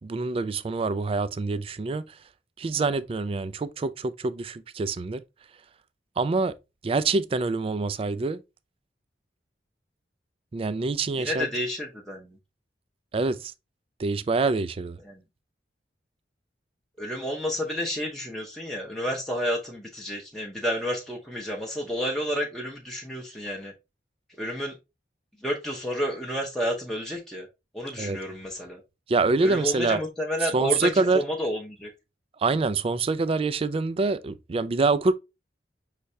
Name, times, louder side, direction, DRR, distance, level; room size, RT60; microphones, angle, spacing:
voice 1, 0.0-2.2 2.6-5.2 6.2-6.5 6.8-8.4 10.5-11.5 13.1-13.5 14.0-15.0 28.0-28.2 29.1-30.0 30.4-31.2 32.4-35.1, right 3 dB, 30° right, 0.3 m, -25 dB
voice 2, 11.2-12.4 15.0-15.2 17.0-23.7 24.4-24.7 25.4-27.5 27.7-28.8 29.4-31.9, equal, ahead, 0.7 m, -30 dB
5.7 x 3.2 x 2.7 m
head